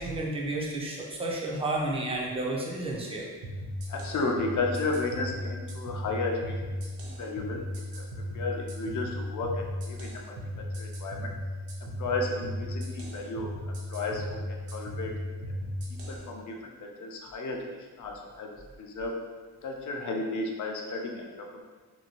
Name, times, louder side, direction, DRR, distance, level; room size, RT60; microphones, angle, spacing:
voice 1, 0.0-3.3, right 2 dB, 15° right, -3 dB, 0.4 m, -31 dB
sound 1, 3.4-16.2, equal, 60° right, 0.7 m, -36 dB
voice 2, 3.9-6.5 7.0-7.6 7.9-8.0 8.3-10.4 10.8-11.3 12.0-13.5 13.9-14.4 14.7-15.1 16.1-17.6 18.0-18.5 18.8-19.2 19.6-21.6, left 3 dB, 50° left, 1 dB, 0.5 m, -33 dB
2.8 x 2.6 x 2.8 m, 1.4 s
cardioid pair, 145°, 39 cm